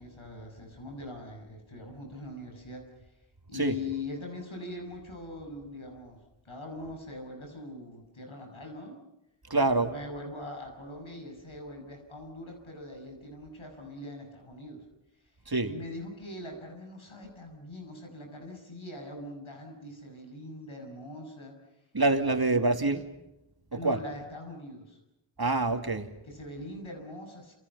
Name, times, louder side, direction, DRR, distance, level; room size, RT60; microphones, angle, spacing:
voice 1, 0.0-3.1 3.5-9.0 9.6-14.8 15.7-21.5 22.2-22.3 23.7-25.0 26.3-27.5, left 2 dB, 90° left, 2 dB, 7.1 m, -42 dB
voice 2, 9.5-9.9 15.5-15.7 21.9-23.0 23.8-24.0 25.4-26.1, right 2 dB, 50° right, 6 dB, 2.6 m, -25 dB
28.5 x 28.0 x 5.7 m, 0.92 s
wide cardioid pair, 60°, 47 cm